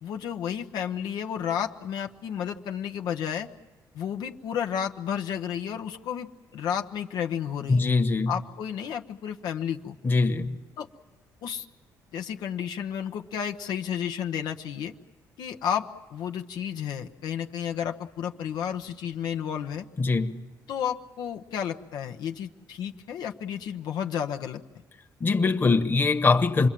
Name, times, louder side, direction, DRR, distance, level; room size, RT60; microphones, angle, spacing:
voice 1, 0.0-3.5 3.9-7.9 8.3-10.0 10.8-10.9 11.4-11.7 12.1-14.9 15.4-19.9 20.7-24.6, left 8 dB, 75° left, 0.9 m, -32 dB
voice 2, 7.7-8.3 10.0-10.6 20.0-20.4 25.2-26.7, left 3 dB, 30° left, 1.3 m, -22 dB
27.0 x 22.0 x 7.5 m
cardioid pair, 100°, 7 cm